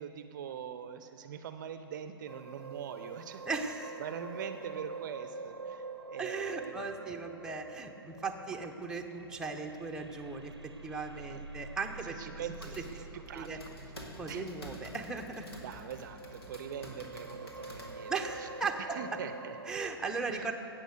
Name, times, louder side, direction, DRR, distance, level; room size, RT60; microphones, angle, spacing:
voice 1, 0.0-3.4 4.0-7.1 11.2-11.4 12.2-13.5 14.3-14.5 15.6-18.1 18.4-18.5 19.0-19.6 20.3-20.5, right 8 dB, 50° right, 10 dB, 0.6 m, -43 dB
sound 1, 2.3-19.7, right 4 dB, 85° right, 0.7 m, -47 dB
voice 2, 3.4-4.0 6.2-12.5 13.0-13.1 13.3-13.6 14.2-15.5 18.1-19.2 19.7-20.5, right 4 dB, 5° right, 1 dB, 0.9 m, -37 dB
sound 2, 12.3-18.5, equal, 75° left, 2.1 m, -49 dB
14.5 x 8.6 x 6.7 m, 2.8 s
figure-of-eight pair, 110°, 13 cm